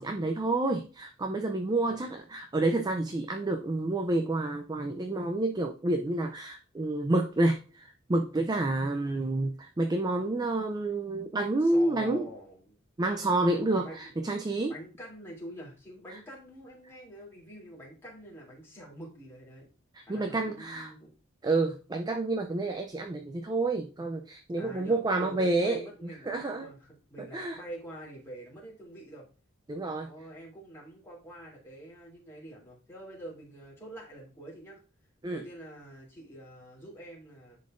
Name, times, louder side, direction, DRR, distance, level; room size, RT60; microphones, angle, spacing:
voice 1, 0.0-12.3 13.0-14.7 16.1-16.2 19.9-20.9 21.4-25.8 26.3-26.7 27.2-27.6 29.7-30.1 35.2-35.5, right 2 dB, 20° right, 5 dB, 0.4 m, -29 dB
voice 2, 1.9-2.2 11.6-12.8 13.7-14.2 14.7-19.7 20.1-21.1 24.6-29.3 30.0-34.8 35.3-37.6, right 1 dB, 10° left, -5 dB, 2.8 m, -46 dB
10.5 x 3.9 x 2.5 m, 0.36 s
head